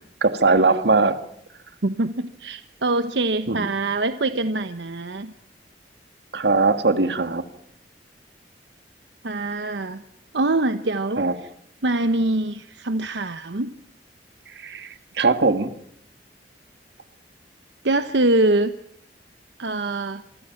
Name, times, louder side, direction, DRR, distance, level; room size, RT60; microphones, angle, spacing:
voice 1, 0.2-1.2 3.5-3.7 6.3-7.4 11.2-11.3 14.5-15.7, right 3 dB, 70° right, 1.7 m, -20 dB
voice 2, 1.8-5.3 9.2-10.0 10.3-11.2 11.8-13.7 17.8-18.7 19.6-20.2, right 2 dB, 85° right, 1.0 m, -24 dB
27.5 x 24.5 x 5.9 m
head